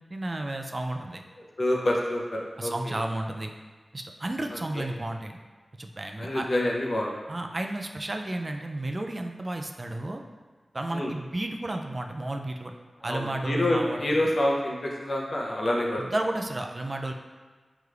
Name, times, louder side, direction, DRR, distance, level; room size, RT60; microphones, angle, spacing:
voice 1, 0.1-1.2 2.6-3.5 3.9-5.4 5.8-6.5 7.3-10.2 10.7-12.7 13.0-14.3 16.0-17.1, right 1 dB, 40° right, 4 dB, 0.3 m, -32 dB
voice 2, 1.4-3.0 4.7-4.9 6.2-7.1 10.9-11.1 13.0-16.0, left 1 dB, 60° left, -2 dB, 0.7 m, -27 dB
4.7 x 3.0 x 2.4 m, 1.4 s
cardioid pair, 55°, 0 cm